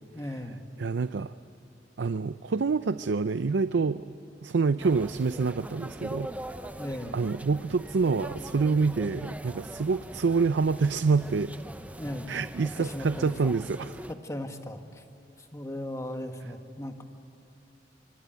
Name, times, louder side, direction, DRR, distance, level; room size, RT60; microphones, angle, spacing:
voice 1, 0.1-0.6 6.8-7.2 12.0-12.3 12.8-13.5 14.1-15.0 15.5-17.0, left 1 dB, 15° left, 6 dB, 1.5 m, -37 dB
voice 2, 0.8-1.3 2.0-4.1 4.4-6.3 7.1-11.5 12.3-14.0, right 4 dB, 85° right, 13 dB, 0.5 m, -27 dB
sound 1, 4.8-14.1, right 1 dB, 10° right, 0.7 m, -42 dB
25.5 x 24.0 x 9.3 m, 2.9 s
head